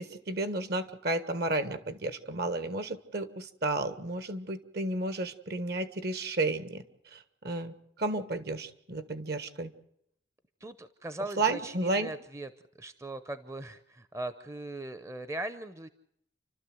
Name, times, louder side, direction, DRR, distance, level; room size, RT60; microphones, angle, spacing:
voice 1, 0.0-6.8 7.1-7.2 7.4-9.7 11.4-12.1, right 2 dB, 55° right, 11 dB, 1.5 m, -32 dB
voice 2, 10.6-12.5 12.8-15.9, right 1 dB, 15° right, 11 dB, 0.7 m, -39 dB
29.5 x 12.5 x 7.8 m, 0.73 s
head